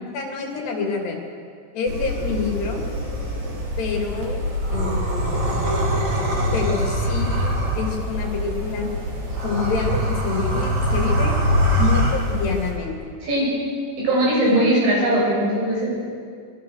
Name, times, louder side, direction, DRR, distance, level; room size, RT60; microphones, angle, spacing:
voice 1, 0.1-1.2 1.7-2.8 3.8-4.4 4.7-5.5 6.5-8.9 9.4-11.4 11.8-13.1 14.5-14.6, left 5 dB, 65° left, 1 dB, 5.1 m, -27 dB
sound 1, 1.9-12.7, equal, 40° right, 4.9 m, -23 dB
voice 2, 13.2-13.6 14.0-15.9, right 1 dB, 75° right, -4 dB, 10.5 m, -20 dB
26.5 x 22.0 x 6.7 m, 2.2 s
omnidirectional pair, 5.4 m